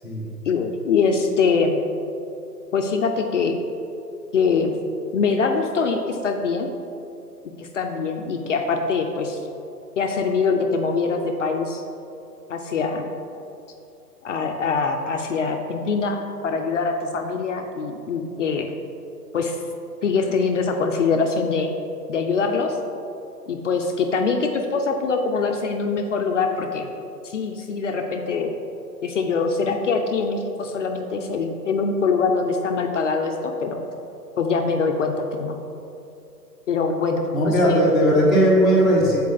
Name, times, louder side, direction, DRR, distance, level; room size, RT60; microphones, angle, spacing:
voice 1, 0.5-1.7 2.7-3.6 4.3-4.7 5.1-6.7 7.6-9.4 10.0-11.8 12.5-13.1 14.2-18.7 19.3-19.6 20.0-21.7 22.1-22.8 23.5-26.9 27.2-28.6 29.0-33.8 34.4-35.6 36.7-37.8, left 4 dB, 50° left, 4 dB, 0.5 m, -23 dB
voice 2, 37.3-39.2, equal, ahead, -10 dB, 0.7 m, -17 dB
7.3 x 4.3 x 3.7 m, 2.7 s
figure-of-eight pair, 125°, 48 cm